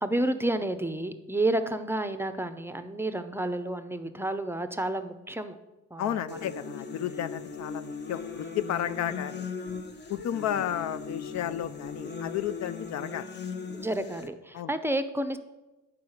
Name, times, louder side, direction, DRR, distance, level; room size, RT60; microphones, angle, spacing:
voice 1, 0.0-5.6 5.9-6.5 13.7-15.4, right 1 dB, 10° right, 10 dB, 0.6 m, -30 dB
voice 2, 6.0-9.5 10.1-13.3 14.5-14.7, left 10 dB, 65° left, 14 dB, 0.5 m, -32 dB
sound 1, 6.3-14.3, left 5 dB, 35° left, 0.9 m, -38 dB
9.3 x 4.8 x 6.4 m, 1.1 s
cardioid pair, 90°, 30 cm